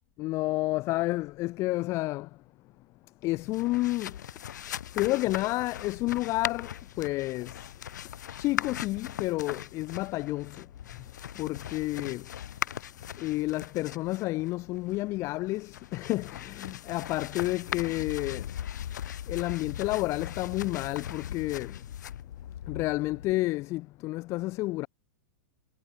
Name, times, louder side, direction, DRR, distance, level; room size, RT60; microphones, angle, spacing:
voice 1, 0.2-2.3 3.2-4.1 5.0-6.7 7.0-7.5 8.4-10.6 11.4-12.2 13.2-18.4 19.3-21.7 22.7-24.9, left 19 dB, 30° left, 2.3 m, -30 dB
sound 1, 3.4-23.3, left 10 dB, 85° left, 5.8 m, -39 dB
supercardioid pair, 155°, 9 cm